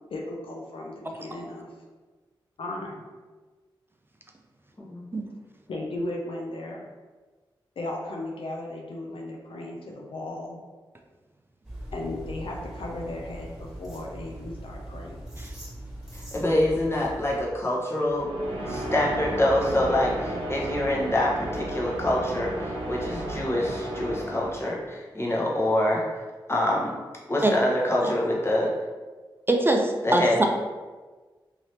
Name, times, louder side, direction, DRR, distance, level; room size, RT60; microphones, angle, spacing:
voice 1, 0.1-1.7 2.6-3.1 5.7-6.8 7.8-10.6 11.9-15.3, left 1 dB, 75° left, -1 dB, 0.6 m, -36 dB
voice 2, 4.8-5.1 16.1-18.3 18.7-26.0 26.5-26.9 27.3-28.7 30.0-30.5, left 1 dB, 25° left, -3 dB, 0.9 m, -25 dB
sound 1, 11.6-17.4, right 1 dB, 5° right, 1.5 m, -41 dB
sound 2, 18.0-24.9, right 1 dB, 80° right, 0.7 m, -33 dB
voice 3, 29.5-30.5, right 1 dB, 25° right, 2 dB, 0.4 m, -23 dB
2.8 x 2.7 x 3.2 m, 1.3 s
cardioid pair, 45°, 9 cm